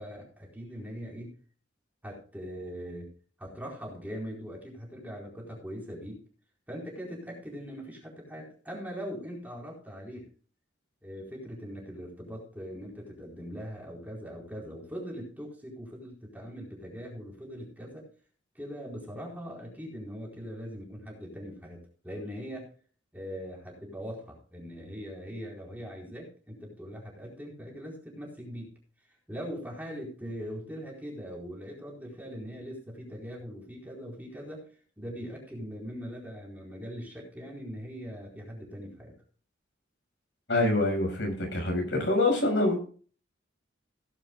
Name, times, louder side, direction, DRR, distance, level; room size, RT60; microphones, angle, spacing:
voice 1, 0.0-1.3 2.0-3.1 3.4-6.2 6.7-10.3 11.0-18.0 18.5-22.7 23.1-28.7 29.3-34.7 35.0-39.2, equal, 10° right, 4.4 m, -41 dB
voice 2, 40.5-42.8, left 2 dB, 75° left, 6.0 m, -25 dB
17.0 x 11.0 x 2.4 m
head